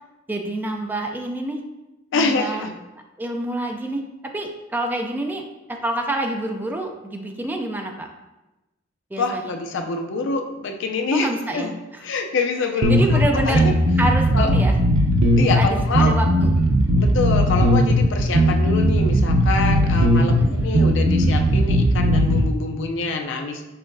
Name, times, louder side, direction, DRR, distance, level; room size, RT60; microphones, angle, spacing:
voice 1, 0.3-1.6 2.1-2.7 3.2-4.0 4.3-5.4 5.7-8.1 9.1-9.6 11.1-11.7 12.9-13.6 14.0-14.8 15.6-16.5 20.3-20.5, right 1 dB, 10° right, 3 dB, 0.3 m, -27 dB
voice 2, 2.1-2.7 9.2-11.7 12.0-13.0 13.5-13.7 14.3-14.5 15.4-16.2 17.0-23.6, left 3 dB, 65° left, 5 dB, 0.4 m, -25 dB
sound 1, 12.8-22.4, equal, 90° right, 0.6 m, -18 dB
5.5 x 3.5 x 2.6 m, 1.0 s
head